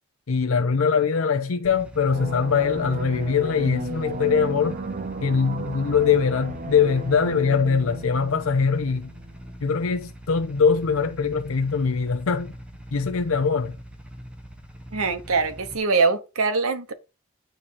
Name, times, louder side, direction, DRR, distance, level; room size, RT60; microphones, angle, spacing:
voice 1, 0.3-4.8 5.2-9.1 9.6-12.5 12.9-13.8, left 5 dB, 70° left, 0.6 m, -22 dB
sound 1, 1.6-15.8, equal, 5° right, 0.9 m, -43 dB
sound 2, 2.0-9.4, right 2 dB, 40° right, 0.6 m, -35 dB
voice 2, 14.9-16.9, right 4 dB, 80° right, 1.0 m, -23 dB
9.0 x 3.2 x 4.1 m
head